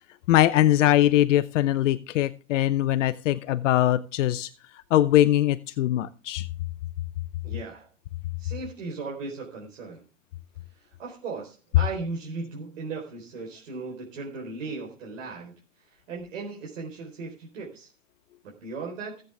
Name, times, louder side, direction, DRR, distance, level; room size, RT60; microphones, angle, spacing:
voice 1, 0.3-4.5 4.9-6.5, left 13 dB, 70° left, 13 dB, 0.8 m, -21 dB
voice 2, 7.4-7.9 8.4-10.0 10.7-15.5 15.9-17.9 18.4-19.2, right 4 dB, 75° right, -2 dB, 4.2 m, -37 dB
17.5 x 8.1 x 3.4 m, 0.36 s
hypercardioid pair, 130°, 38 cm